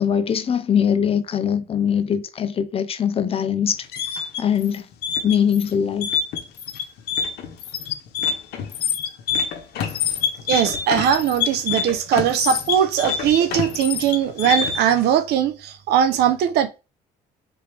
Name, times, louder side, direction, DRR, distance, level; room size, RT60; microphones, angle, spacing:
voice 1, 0.0-4.9 5.2-6.2, left 8 dB, 35° left, 0.5 m, -22 dB
sound 1, 3.7-15.0, left 7 dB, 75° left, 0.8 m, -26 dB
voice 2, 10.5-16.7, right 9 dB, 75° right, 0.6 m, -20 dB
3.5 x 3.3 x 3.3 m
cardioid pair, 110°, 17 cm